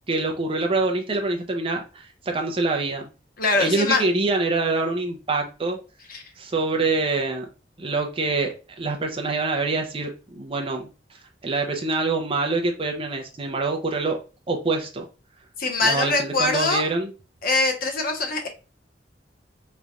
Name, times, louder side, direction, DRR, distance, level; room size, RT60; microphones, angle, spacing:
voice 1, 0.1-3.1 3.6-5.8 6.4-7.5 7.8-10.9 11.4-14.2 14.5-15.0 15.8-17.1, right 3 dB, 30° right, 3 dB, 0.6 m, -25 dB
voice 2, 3.4-4.0 6.1-6.2 15.6-16.8 17.4-18.5, left 3 dB, 55° left, 3 dB, 1.0 m, -23 dB
3.9 x 3.2 x 2.3 m, 0.33 s
head